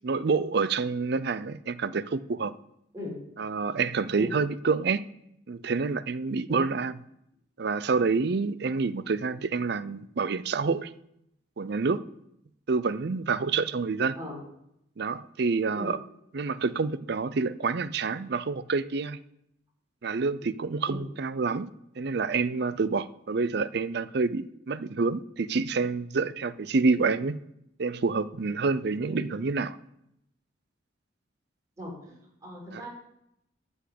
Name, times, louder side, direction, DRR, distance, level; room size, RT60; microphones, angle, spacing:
voice 1, 0.0-2.5 3.4-5.0 5.5-7.0 7.6-10.9 11.6-12.0 12.7-14.2 15.0-16.0 16.3-19.2 20.0-21.7 22.0-27.4 27.8-29.8 32.7-32.8, right 4 dB, 60° right, 15 dB, 0.5 m, -28 dB
voice 2, 31.8-32.1 32.4-32.9, left 1 dB, 20° right, -3 dB, 4.9 m, -38 dB
11.5 x 5.4 x 8.6 m, 0.78 s
head